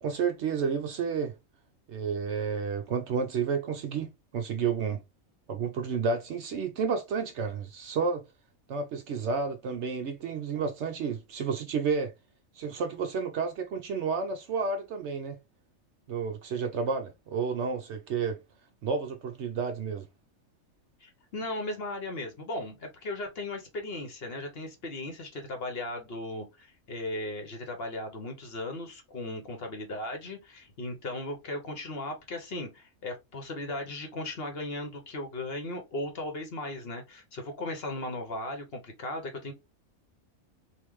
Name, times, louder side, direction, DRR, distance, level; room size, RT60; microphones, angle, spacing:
voice 1, 0.0-1.3 1.9-5.0 5.5-8.2 8.7-12.1 12.6-15.4 16.1-18.4 18.8-20.1, right 5 dB, 65° right, 0.8 m, -31 dB
voice 2, 21.0-39.5, left 2 dB, 50° left, 1.0 m, -37 dB
3.6 x 2.5 x 3.0 m
omnidirectional pair, 1.4 m